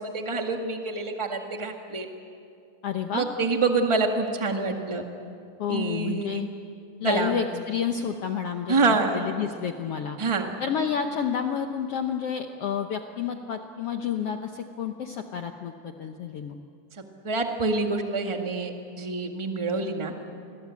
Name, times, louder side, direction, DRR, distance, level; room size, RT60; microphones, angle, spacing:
voice 1, 0.0-2.1 3.1-5.0 5.7-6.4 7.0-7.3 8.7-9.3 10.2-10.5 17.2-20.1, right 3 dB, 20° right, 3 dB, 0.7 m, -26 dB
voice 2, 2.8-3.3 5.6-6.5 7.0-10.2 10.6-16.6, left 7 dB, 80° left, 5 dB, 1.3 m, -30 dB
28.5 x 21.5 x 8.5 m, 2.5 s
omnidirectional pair, 4.1 m